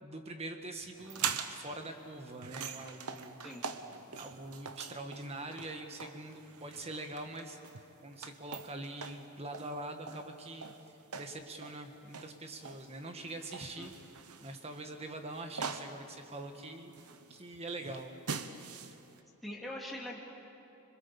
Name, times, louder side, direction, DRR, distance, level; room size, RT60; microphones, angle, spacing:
voice 1, 0.0-3.4 3.9-7.6 8.0-10.7 11.1-13.9 14.4-16.9 17.3-18.5, right 2 dB, 30° right, 5 dB, 1.7 m, -44 dB
sound 1, 1.0-19.2, right 6 dB, 85° right, 1.1 m, -43 dB
voice 2, 19.4-20.2, left 1 dB, ahead, -4 dB, 2.9 m, -42 dB
26.0 x 23.0 x 7.1 m, 2.9 s
head